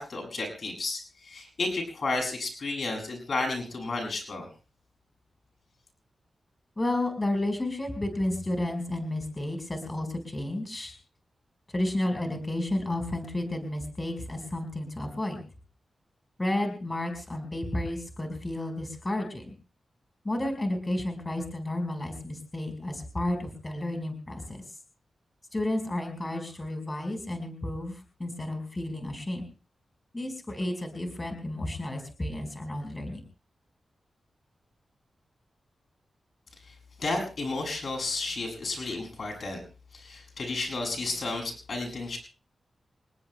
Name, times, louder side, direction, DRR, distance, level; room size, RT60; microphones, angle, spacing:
voice 1, 0.0-4.5 36.6-39.6 39.9-42.2, left 3 dB, 60° left, 2 dB, 7.4 m, -32 dB
voice 2, 6.8-11.0 11.7-15.4 16.4-19.5 20.2-24.6 25.5-29.4 30.1-33.2, left 1 dB, 25° left, 5 dB, 4.8 m, -32 dB
27.5 x 19.5 x 2.3 m, 0.35 s
cardioid pair, 70°, 0 cm